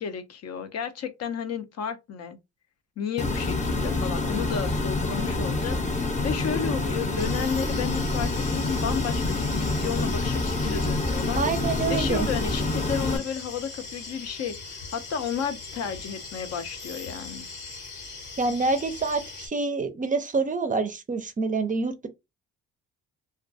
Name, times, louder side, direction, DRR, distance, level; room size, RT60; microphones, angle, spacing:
voice 1, 0.0-2.4 3.0-11.4 11.9-17.5, left 7 dB, 55° left, 0.5 m, -32 dB
sound 1, 3.2-13.2, left 2 dB, 25° left, 0.7 m, -27 dB
sound 2, 7.2-19.5, left 4 dB, 80° left, 1.1 m, -40 dB
voice 2, 11.3-12.3 18.4-22.1, right 4 dB, 25° right, 0.4 m, -27 dB
2.3 x 2.2 x 2.6 m
cardioid pair, 90°, 30 cm